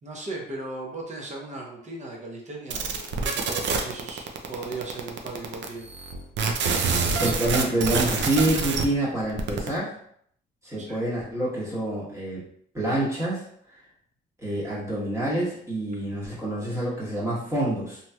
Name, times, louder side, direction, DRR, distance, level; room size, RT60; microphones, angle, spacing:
voice 1, 0.0-5.9 10.8-11.0, right 2 dB, 35° right, -1 dB, 0.9 m, -37 dB
sound 1, 2.7-8.8 9.2-9.8, right 4 dB, 65° right, 0.5 m, -26 dB
voice 2, 6.9-9.9 10.6-12.4 12.7-13.4 14.4-18.0, right 1 dB, 15° right, -8 dB, 1.2 m, -27 dB
3.0 x 2.8 x 2.3 m, 0.66 s
cardioid pair, 90°, 20 cm